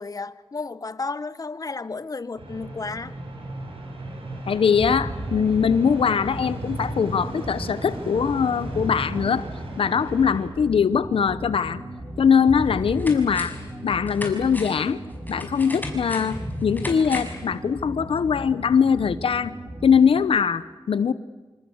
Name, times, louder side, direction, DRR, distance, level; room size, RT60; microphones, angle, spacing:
voice 1, 0.0-3.1, left 4 dB, 40° left, 1.0 m, -32 dB
sound 1, 2.4-10.5, right 2 dB, 85° right, 7.5 m, -36 dB
voice 2, 4.5-9.5 9.8-11.8 12.2-13.6 13.8-15.0 15.3-19.5 19.8-21.1, left 6 dB, 85° left, 0.9 m, -21 dB
sound 2, 4.8-20.2, right 1 dB, 30° right, 4.2 m, -36 dB
sound 3, 12.1-12.2 12.6-13.7 14.1-17.5 17.8-17.9, left 2 dB, 20° left, 5.9 m, -36 dB
27.0 x 27.0 x 8.0 m
wide cardioid pair, 75°, 9 cm